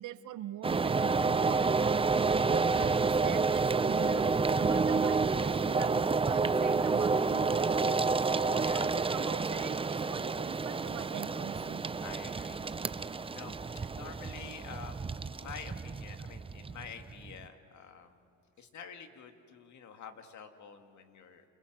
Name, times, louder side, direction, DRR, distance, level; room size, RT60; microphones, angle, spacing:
voice 1, 0.0-1.7 2.5-6.0 6.2-8.0 8.5-11.8, right 12 dB, 70° right, 14 dB, 0.9 m, -43 dB
sound 1, 0.6-17.4, right 4 dB, 15° right, 0.6 m, -29 dB
voice 2, 12.0-12.6 13.1-13.5 13.9-15.0 15.2-18.2 18.6-21.4, left 7 dB, 65° left, 6 dB, 2.2 m, -48 dB
29.0 x 29.0 x 6.1 m, 2.7 s
supercardioid pair, 80°, 32 cm